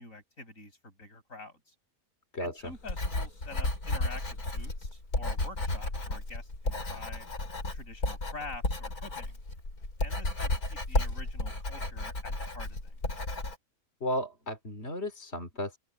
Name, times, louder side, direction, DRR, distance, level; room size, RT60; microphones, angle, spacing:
voice 1, 0.0-1.7 2.4-7.3 7.7-9.4 10.0-13.2, left 3 dB, 60° left, 8.2 m, -47 dB
voice 2, 2.3-2.7 14.0-15.8, equal, 45° left, 3.3 m, -34 dB
Writing, 2.7-13.5, left 2 dB, 80° left, 6.2 m, -33 dB
open air
omnidirectional pair, 1.5 m